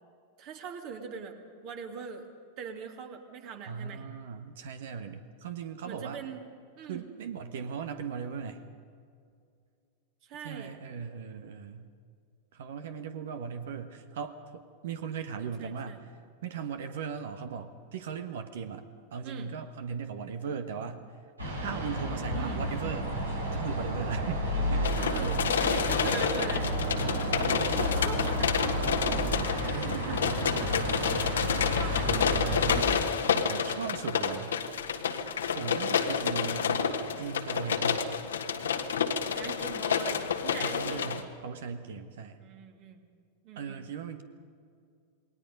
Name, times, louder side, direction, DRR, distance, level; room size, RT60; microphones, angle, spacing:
voice 1, 0.4-1.4 1.6-2.3 2.6-4.0 5.8-6.4 6.8-7.0 10.2-10.8 15.6-16.0 19.2-19.5 22.3-22.6 25.0-26.7 27.6-28.6 29.6-31.2 31.7-32.4 39.3-41.2 42.4-43.0 43.4-43.9, right 6 dB, 40° right, 4 dB, 2.6 m, -41 dB
voice 2, 3.7-6.2 6.9-8.6 10.4-11.9 12.5-16.1 16.4-18.9 19.1-21.1 21.6-23.1 23.5-25.2 27.0-28.1 29.7-30.5 33.2-34.6 35.5-38.1 40.6-42.4 43.5-44.2, right 6 dB, 60° right, 9 dB, 1.4 m, -38 dB
sound 1, 21.4-32.8, equal, 80° right, 5.8 m, -31 dB
sound 2, 24.8-41.2, left 7 dB, 65° left, 1.5 m, -29 dB
28.0 x 21.0 x 5.4 m, 2.3 s
figure-of-eight pair, 90°, 0 cm